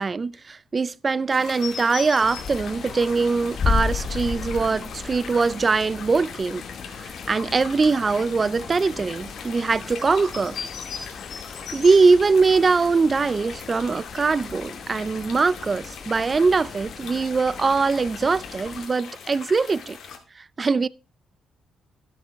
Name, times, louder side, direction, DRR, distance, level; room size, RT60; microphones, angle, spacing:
voice 1, 0.0-6.6 7.0-10.6 11.7-20.0 20.4-20.9, right 4 dB, 30° right, 0.4 m, -22 dB
sound 1, 1.3-20.2, left 7 dB, 65° left, 2.3 m, -40 dB
sound 2, 2.2-18.9, left 5 dB, 50° left, 1.4 m, -35 dB
13.0 x 6.5 x 3.5 m
cardioid pair, 90°, 0 cm